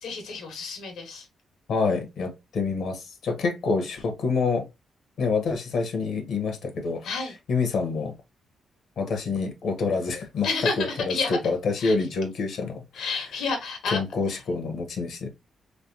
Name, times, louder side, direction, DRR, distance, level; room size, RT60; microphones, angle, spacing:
voice 1, 0.0-1.2 7.0-7.3 10.4-11.4 11.8-11.9 13.0-14.0, left 4 dB, 90° left, 1.4 m, -30 dB
voice 2, 1.7-4.7 5.2-7.1 7.5-8.1 9.0-10.5 10.8-13.1 13.9-15.3, left 4 dB, 75° left, 1.1 m, -27 dB
3.3 x 3.2 x 2.7 m
cardioid pair, 90°, 0 cm